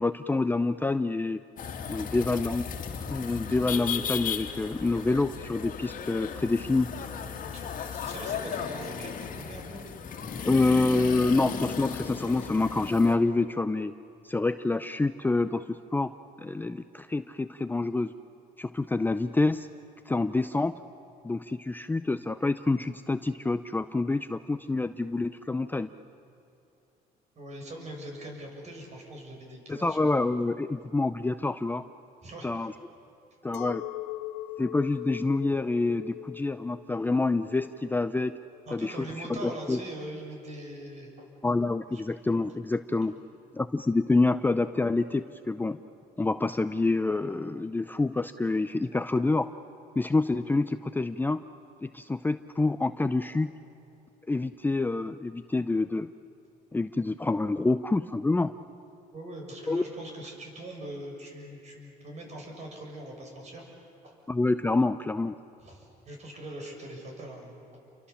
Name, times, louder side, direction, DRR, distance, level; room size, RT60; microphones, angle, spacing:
voice 1, 0.0-1.4 1.9-2.7 3.1-6.9 10.4-13.9 14.2-16.1 16.4-18.1 18.6-19.7 20.1-20.7 21.2-25.9 29.7-31.9 32.4-32.7 33.4-33.8 34.6-38.4 38.7-39.8 41.4-43.1 43.5-45.8 46.2-49.5 50.0-51.4 51.8-53.5 54.3-56.1 56.7-58.5 59.7-59.8 64.3-65.3, left 3 dB, 10° left, 10 dB, 0.6 m, -27 dB
sound 1, 1.6-13.2, left 7 dB, 50° left, 2.2 m, -36 dB
voice 2, 7.4-9.8 27.4-30.0 32.2-32.5 38.7-41.3 41.9-42.0 59.1-64.2 65.6-67.5, right 1 dB, 40° right, 1 dB, 7.2 m, -42 dB
Chink clink, 33.5-39.0, left 15 dB, 85° left, 0.8 m, -41 dB
29.5 x 24.0 x 7.2 m, 2.8 s
cardioid pair, 110°, 17 cm